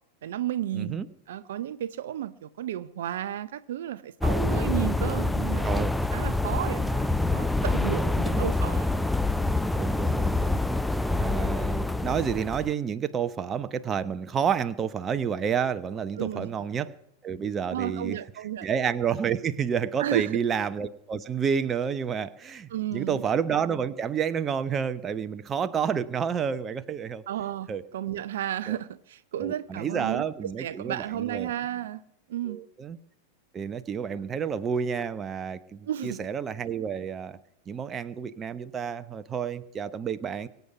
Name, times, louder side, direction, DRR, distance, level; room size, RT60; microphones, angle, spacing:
voice 1, 0.2-1.0 1.3-5.7 6.1-8.9 16.2-16.5 17.7-18.7 20.0-20.4 22.7-23.2 27.3-32.0 32.3-32.6 35.9-36.2, right 11 dB, 60° right, 0.5 m, -33 dB
voice 2, 0.7-1.1 5.6-5.9 8.2-8.5 9.7-10.7 11.2-16.9 17.2-18.2 18.6-27.2 27.7-27.8 28.7-28.8 29.4-31.5 32.4-33.0 33.5-37.4 37.7-40.5, right 7 dB, 25° right, 0.8 m, -30 dB
sound 1, 4.2-12.7, left 2 dB, 5° left, 0.5 m, -26 dB
23.0 x 8.2 x 5.9 m
figure-of-eight pair, 90°, 0 cm